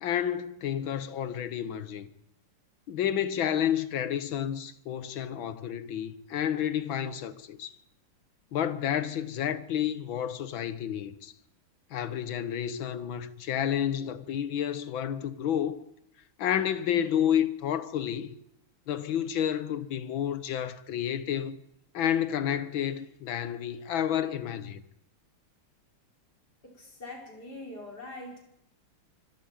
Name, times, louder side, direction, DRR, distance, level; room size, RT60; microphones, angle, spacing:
voice 1, 0.0-2.1 2.9-7.7 8.5-11.3 11.9-15.8 16.4-18.3 18.9-21.6 21.9-24.8, left 9 dB, 70° left, 1.9 m, -30 dB
voice 2, 26.6-28.4, left 2 dB, 50° left, 5.8 m, -43 dB
24.5 x 13.5 x 9.1 m
omnidirectional pair, 2.3 m